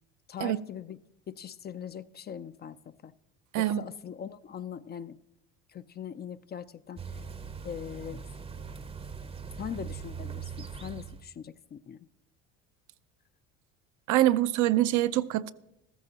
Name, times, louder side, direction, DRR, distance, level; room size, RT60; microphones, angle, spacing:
voice 1, 0.3-1.0 1.3-3.1 3.6-5.2 5.7-7.2 7.6-8.2 9.6-12.0, left 8 dB, 30° left, 0.4 m, -41 dB
voice 2, 3.5-3.8 14.1-15.5, right 14 dB, 60° right, 0.6 m, -24 dB
sound 1, 7.0-11.3, right 6 dB, 15° right, 0.7 m, -41 dB
14.0 x 14.0 x 2.9 m
supercardioid pair, 95°, 33 cm